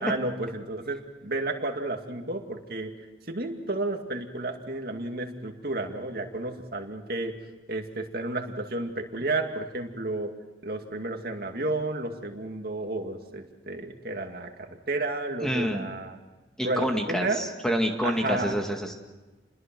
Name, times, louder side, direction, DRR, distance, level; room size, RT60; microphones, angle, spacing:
voice 1, 0.0-2.9 3.3-7.4 7.7-10.3 10.6-16.2 16.6-17.5 18.0-18.6, right 2 dB, 50° right, 4 dB, 2.3 m, -32 dB
voice 2, 15.4-15.9 16.6-18.9, equal, 5° left, 3 dB, 2.1 m, -28 dB
28.5 x 21.5 x 6.2 m, 1.2 s
head